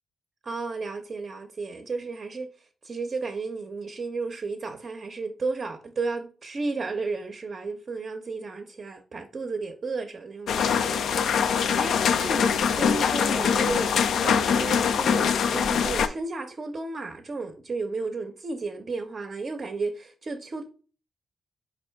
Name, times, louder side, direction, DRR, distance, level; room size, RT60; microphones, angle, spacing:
voice 1, 0.4-20.6, right 3 dB, 50° right, 0.6 m, -33 dB
sound 1, 10.5-16.1, left 7 dB, 75° left, 0.3 m, -23 dB
4.3 x 2.5 x 4.5 m
cardioid pair, 65°, 0 cm